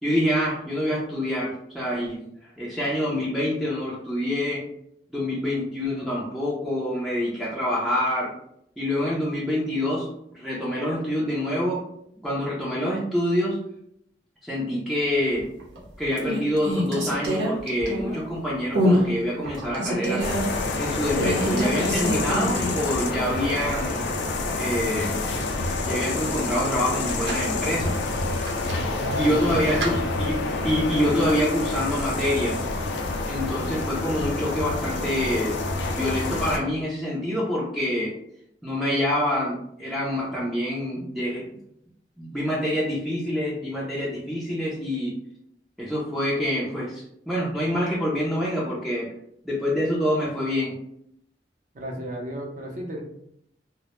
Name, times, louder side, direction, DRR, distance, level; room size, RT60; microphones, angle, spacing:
voice 1, 0.0-4.6 5.1-8.3 8.8-10.1 10.3-11.8 12.2-13.6 14.4-15.5 16.0-20.2 20.8-24.0 24.6-25.1 25.8-28.0 29.2-32.7 33.2-35.6 35.9-38.1 38.6-41.4 42.2-45.1 45.8-49.1 49.4-50.7, left 1 dB, ahead, -7 dB, 0.4 m, -26 dB
sound 1, 15.4-15.8 16.1-18.3 18.7-19.1 19.4-20.5 21.1-22.9 23.2-23.3 26.8-27.5 28.4-29.9, equal, 85° right, 0.7 m, -26 dB
sound 2, 20.2-36.6, left 3 dB, 80° left, 0.4 m, -28 dB
voice 2, 28.9-30.0 51.7-53.0, equal, 45° right, 0 dB, 0.5 m, -33 dB
2.0 x 2.0 x 2.9 m, 0.74 s
head